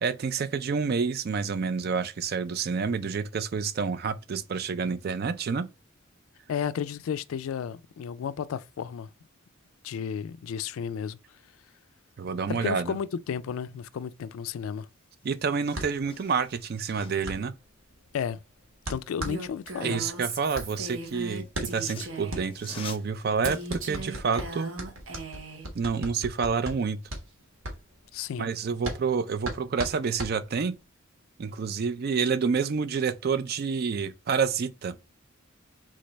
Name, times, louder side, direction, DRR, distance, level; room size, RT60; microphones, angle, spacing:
voice 1, 0.0-5.7 12.2-13.0 15.2-17.5 19.8-24.7 25.7-27.0 28.4-30.8 31.4-34.9, right 5 dB, 45° right, 0.4 m, -28 dB
voice 2, 6.5-9.1 9.8-11.2 12.5-14.9 18.1-18.4 18.9-20.0 28.1-28.5, left 7 dB, 75° left, 0.3 m, -33 dB
sound 1, 14.8-14.9 15.1-17.4 19.5-20.6 21.4-24.8 25.2-25.3, left 5 dB, 25° left, 0.6 m, -48 dB
sound 2, 15.7-30.8, right 1 dB, 80° right, 1.3 m, -39 dB
Female speech woman speaking, 19.3-22.5 23.4-25.7, right 2 dB, 65° right, 0.9 m, -38 dB
3.8 x 3.2 x 3.9 m
head